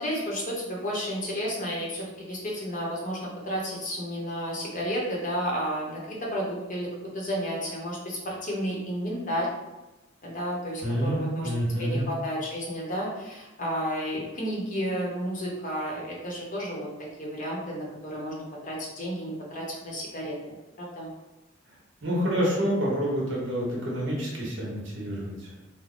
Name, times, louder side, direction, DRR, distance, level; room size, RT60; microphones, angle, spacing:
voice 1, 0.0-3.2 3.4-9.5 10.2-11.5 11.8-16.9 17.2-21.1, equal, 40° left, -3 dB, 0.8 m, -32 dB
voice 2, 10.8-12.1 22.0-25.3, equal, 65° right, -4 dB, 1.2 m, -28 dB
3.4 x 2.1 x 3.8 m, 1.0 s
head